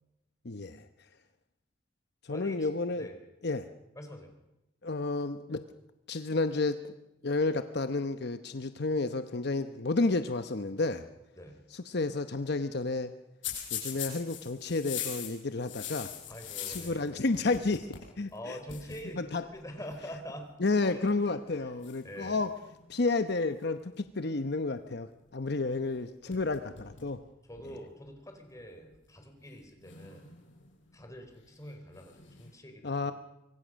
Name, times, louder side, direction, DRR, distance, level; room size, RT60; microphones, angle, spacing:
voice 1, 0.4-0.8 2.2-3.1 3.4-3.7 4.8-5.6 6.1-6.9 7.2-11.1 11.7-13.1 13.7-16.1 16.7-18.6 19.2-19.4 20.6-22.5 22.9-27.2 32.8-33.1, left 3 dB, 55° left, 10 dB, 0.9 m, -31 dB
voice 2, 2.3-3.2 4.0-4.3 11.4-11.6 16.3-17.0 18.3-20.5 20.9-21.0 21.6-21.7 22.0-22.4 26.3-26.5 27.4-30.3 30.9-33.1, equal, 15° left, 5 dB, 4.3 m, -45 dB
sound 1, 13.4-17.1 17.3-18.1 18.4-18.5 18.7-19.0 19.9-20.2 20.9-21.3 21.8-22.9 25.9-26.0 26.3-27.1 27.6-27.7 28.6-28.7 29.8-30.7 31.9-32.5, left 9 dB, 75° left, 6.2 m, -41 dB
25.0 x 23.5 x 6.4 m, 0.93 s
head